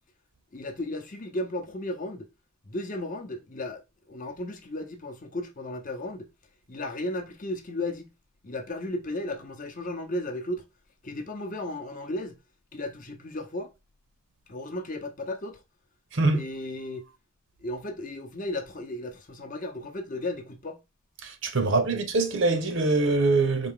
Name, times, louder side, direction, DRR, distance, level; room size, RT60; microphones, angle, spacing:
voice 1, 0.5-2.3 2.6-6.3 6.7-8.1 8.4-10.7 11.0-12.4 12.7-13.7 14.5-15.6 16.3-17.0 17.6-20.8 21.6-21.8, left 1 dB, 40° left, 0.7 m, -35 dB
voice 2, 16.1-16.4 21.2-23.7, right 3 dB, 55° right, 0.8 m, -24 dB
4.2 x 2.7 x 3.7 m
head